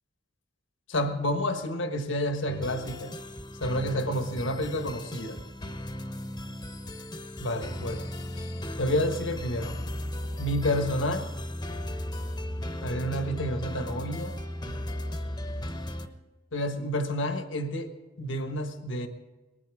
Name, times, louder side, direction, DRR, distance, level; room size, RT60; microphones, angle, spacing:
voice 1, 0.9-3.1 3.6-5.4 7.4-8.1 8.4-8.5 8.8-9.7 10.4-11.3 12.8-14.4 16.5-17.9 18.2-19.1, left 1 dB, 80° left, 7 dB, 1.4 m, -29 dB
sound 1, 2.5-16.1, left 1 dB, 20° left, 1.0 m, -36 dB
20.0 x 14.5 x 3.6 m, 1.2 s
head